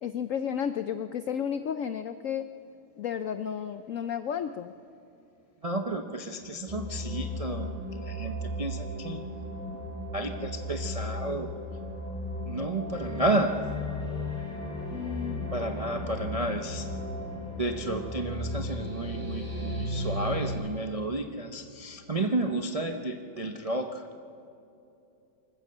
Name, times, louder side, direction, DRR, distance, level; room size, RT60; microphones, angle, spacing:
voice 1, 0.0-2.5 3.0-4.7 14.9-15.4, left 8 dB, 80° left, 11 dB, 0.7 m, -32 dB
voice 2, 5.6-9.2 10.1-11.5 12.5-13.5 15.5-16.9 17.6-24.1, right 2 dB, 50° right, 5 dB, 0.4 m, -32 dB
sound 1, 6.7-20.5, left 1 dB, 5° left, 6.9 m, -35 dB
sound 2, 12.9-19.9, equal, 25° left, 3.2 m, -53 dB
25.0 x 14.0 x 7.9 m, 2.8 s
omnidirectional pair, 2.0 m